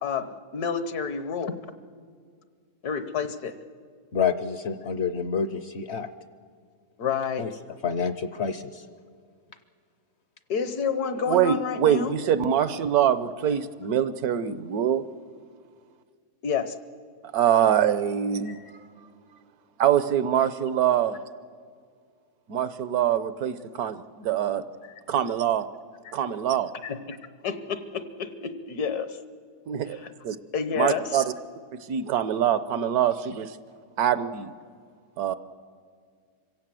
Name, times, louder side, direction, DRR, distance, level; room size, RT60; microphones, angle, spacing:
voice 1, 0.0-1.5 2.8-3.5 7.0-7.5 10.5-12.2 16.4-16.7 18.4-18.7 26.0-26.1 26.8-27.2 27.4-29.2 29.9-30.1 30.5-31.1, left 6 dB, 75° left, 11 dB, 1.5 m, -29 dB
voice 2, 4.1-6.1 7.4-7.5 7.8-8.8, left 6 dB, 55° left, 12 dB, 0.8 m, -28 dB
voice 3, 11.3-15.0 17.3-18.6 19.8-21.2 22.5-24.6 25.1-25.7 26.1-26.7 29.7-30.0 30.2-30.4 30.8-31.2 31.9-33.5 34.0-34.5 35.2-35.3, right 9 dB, 75° right, 14 dB, 1.2 m, -24 dB
25.5 x 16.5 x 7.6 m, 2.1 s
omnidirectional pair, 1.7 m